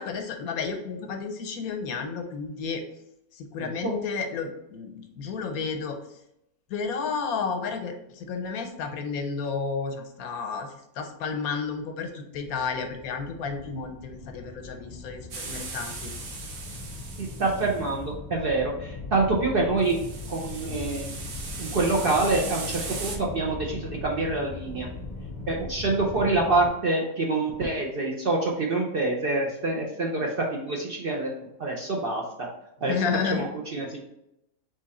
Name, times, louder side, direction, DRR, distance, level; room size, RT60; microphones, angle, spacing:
voice 1, 0.0-2.8 3.3-6.0 6.7-16.1 32.8-33.4, left 5 dB, 80° left, 5 dB, 1.1 m, -32 dB
voice 2, 3.6-3.9 17.2-20.0 20.3-21.2 21.6-24.9 25.5-31.3 31.6-32.5 32.8-33.0 33.3-34.0, right 2 dB, 55° right, -1 dB, 0.6 m, -26 dB
sound 1, 12.3-26.7, left 3 dB, 50° left, 0.6 m, -39 dB
sound 2, 15.3-17.8 19.8-23.2, right 4 dB, 90° right, 1.3 m, -38 dB
3.6 x 3.1 x 4.1 m, 0.82 s
omnidirectional pair, 1.5 m